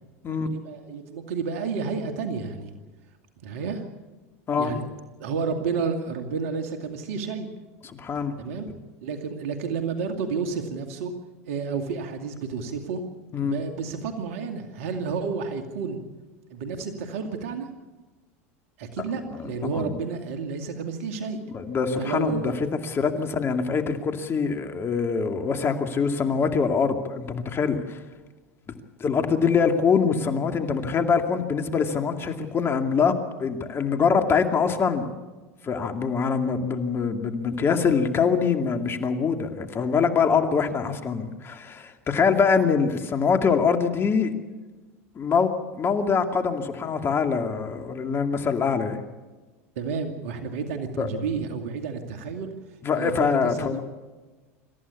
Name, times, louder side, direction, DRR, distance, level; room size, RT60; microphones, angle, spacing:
voice 1, 0.3-2.7 3.4-3.8 4.6-4.9 5.2-7.5 8.4-8.7 9.0-11.1 11.5-13.0 13.4-16.0 16.5-17.7 18.8-21.4 22.0-22.6 49.8-52.5 52.9-53.8, right 5 dB, 70° right, 5 dB, 2.3 m, -31 dB
voice 2, 7.9-8.3 13.3-13.6 19.3-20.0 21.5-22.5 22.9-28.0 29.0-35.1 35.6-44.3 45.2-49.0 51.0-51.1 52.8-53.8, left 5 dB, 30° left, 6 dB, 2.4 m, -24 dB
26.5 x 14.5 x 8.4 m, 1.3 s
hypercardioid pair, 90°, 8 cm